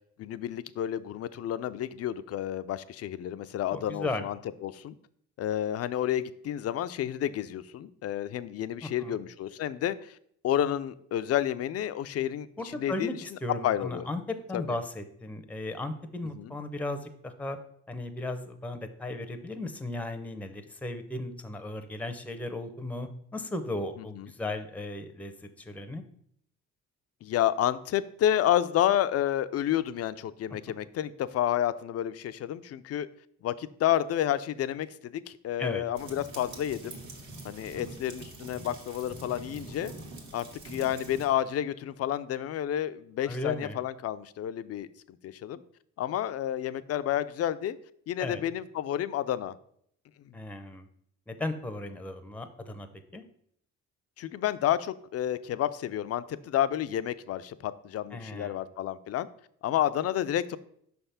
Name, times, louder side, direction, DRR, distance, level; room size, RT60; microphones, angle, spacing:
voice 1, 0.2-4.9 5.4-10.2 10.4-13.2 13.6-14.1 14.5-14.6 16.3-16.6 24.0-24.3 27.2-33.1 33.4-37.0 37.4-39.9 40.3-44.9 45.2-45.6 46.0-47.8 48.1-49.5 54.2-59.3 59.6-60.6, left 11 dB, 55° left, 14 dB, 0.4 m, -30 dB
voice 2, 3.7-4.2 8.8-9.2 12.6-17.6 17.9-25.3 25.6-26.0 35.6-35.8 43.3-43.8 48.2-48.4 50.3-50.9 51.3-52.9 53.1-53.2 58.1-58.6, left 2 dB, 5° left, 7 dB, 0.6 m, -36 dB
sound 1, 35.9-41.3, right 2 dB, 70° right, 1.6 m, -44 dB
5.5 x 3.4 x 5.6 m, 0.68 s
cardioid pair, 90°, 30 cm